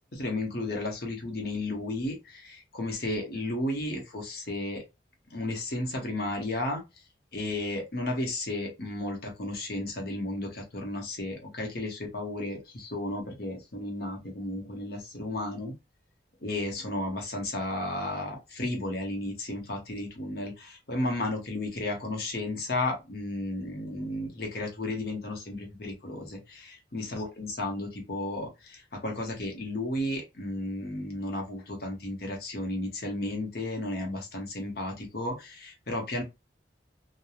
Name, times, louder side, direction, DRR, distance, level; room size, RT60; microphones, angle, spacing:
voice 1, 0.1-4.8 5.3-6.8 7.3-15.7 16.4-36.2, left 1 dB, 55° left, 0.9 m, -33 dB
3.0 x 2.2 x 2.3 m
head